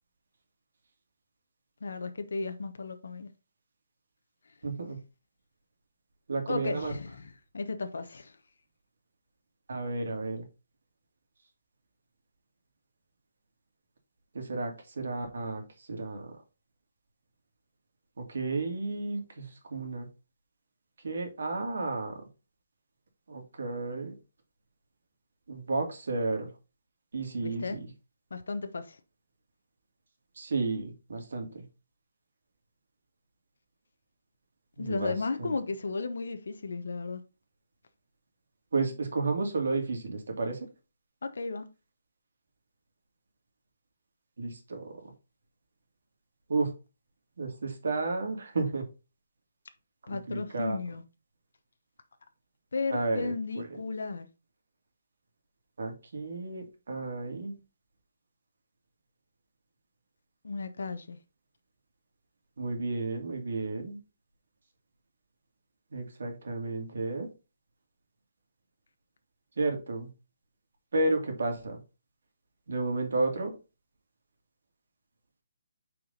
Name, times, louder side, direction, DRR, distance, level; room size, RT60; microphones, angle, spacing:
voice 1, 1.8-3.3 6.5-8.4 27.4-27.8 28.3-29.0 34.8-37.2 41.2-41.7 50.1-51.0 52.7-54.3 60.4-61.2, left 4 dB, 90° left, 0.9 m, -34 dB
voice 2, 4.6-5.0 6.3-6.9 9.7-10.4 14.3-16.3 18.2-20.1 21.0-22.2 23.3-24.1 25.5-26.5 27.1-27.9 30.4-31.6 34.8-35.1 35.4-35.5 38.7-40.7 44.4-45.0 46.5-46.7 47.4-48.9 50.1-50.8 52.9-53.8 55.8-57.6 62.6-64.0 65.9-67.3 69.6-70.1 70.9-71.8 72.7-73.5, right 3 dB, 70° right, 2.3 m, -32 dB
5.8 x 4.9 x 3.9 m
hypercardioid pair, 180°, 0 cm